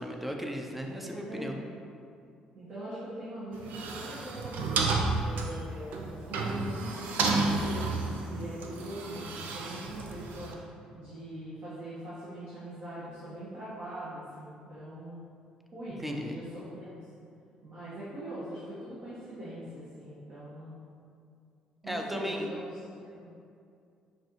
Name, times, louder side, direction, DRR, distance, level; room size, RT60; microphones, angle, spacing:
voice 1, 0.0-1.6 16.0-16.4 21.8-22.5, equal, 5° right, 2 dB, 0.6 m, -35 dB
voice 2, 1.0-1.7 2.5-4.6 5.2-10.5 10.9-15.2 15.7-16.9 17.6-20.8 21.8-22.8 23.0-23.3, right 1 dB, 50° right, -11 dB, 1.3 m, -42 dB
sound 1, 3.5-10.5, right 3 dB, 65° right, 0.4 m, -31 dB
5.9 x 2.6 x 3.0 m, 2.4 s
hypercardioid pair, 55°, 3 cm